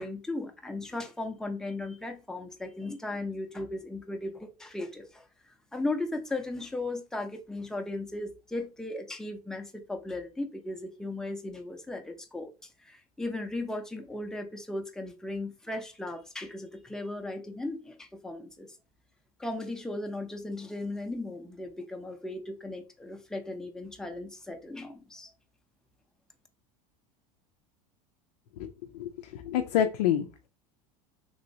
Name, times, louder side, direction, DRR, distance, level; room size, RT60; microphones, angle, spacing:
voice 1, 0.0-5.2 5.7-12.5 12.8-18.7 19.4-25.3, left 2 dB, 5° left, 0.6 m, -36 dB
voice 2, 28.6-30.5, left 10 dB, 85° left, 0.4 m, -29 dB
3.1 x 3.0 x 2.6 m
hypercardioid pair, 95°, 20 cm